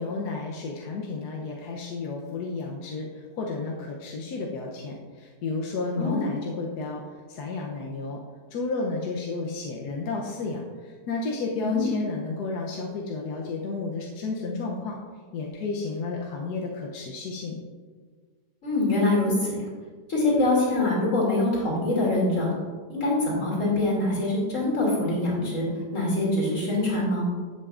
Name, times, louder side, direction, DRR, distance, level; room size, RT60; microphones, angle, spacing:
voice 1, 0.0-7.0 7.3-8.2 8.5-15.0 15.3-17.6, left 3 dB, 70° left, -1 dB, 1.3 m, -32 dB
voice 2, 6.0-6.3 11.6-11.8 18.6-19.7 20.1-22.5 22.9-25.6 25.9-27.3, left 2 dB, 45° left, -4 dB, 2.9 m, -24 dB
10.5 x 7.9 x 2.5 m, 1.5 s
omnidirectional pair, 1.8 m